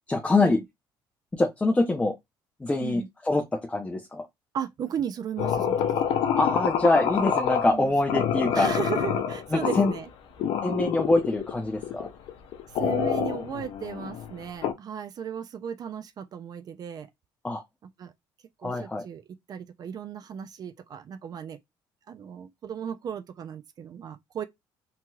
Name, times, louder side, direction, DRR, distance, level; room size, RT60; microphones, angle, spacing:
voice 1, 0.1-0.6 1.3-2.1 2.6-4.2 6.4-8.7 9.5-9.9 10.6-12.1 17.4-17.6 18.6-19.0, left 2 dB, 15° left, 0.6 m, -24 dB
voice 2, 4.5-6.0 7.7-7.9 8.5-10.1 12.8-17.1 18.0-18.1 18.6-19.2 19.5-21.6 22.1-24.4, right 8 dB, 45° right, 0.4 m, -35 dB
sound 1, 5.4-7.8 8.1-10.0 10.4-11.5 11.8-14.7, left 8 dB, 75° left, 0.5 m, -27 dB
3.0 x 2.9 x 2.3 m
cardioid pair, 95°, 9 cm